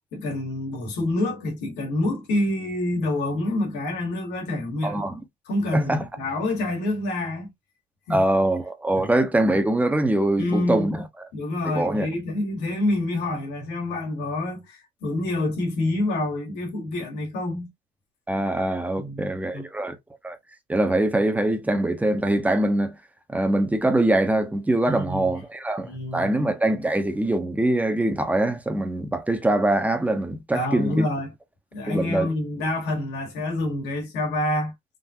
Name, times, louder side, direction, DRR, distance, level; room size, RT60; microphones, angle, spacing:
voice 1, 0.1-5.0 5.5-7.5 8.1-8.2 9.0-9.1 10.4-11.0 11.3-17.7 19.0-19.7 24.9-25.4 25.8-26.3 30.5-31.3 31.7-34.7, left 2 dB, 85° left, 1.8 m, -27 dB
voice 2, 4.8-5.1 5.7-6.0 8.1-11.0 11.7-12.1 18.3-20.0 20.2-20.4 20.7-23.0 23.3-31.1 31.9-32.3, right 1 dB, 10° right, 0.7 m, -23 dB
3.7 x 2.5 x 2.7 m
cardioid pair, 110°, 17 cm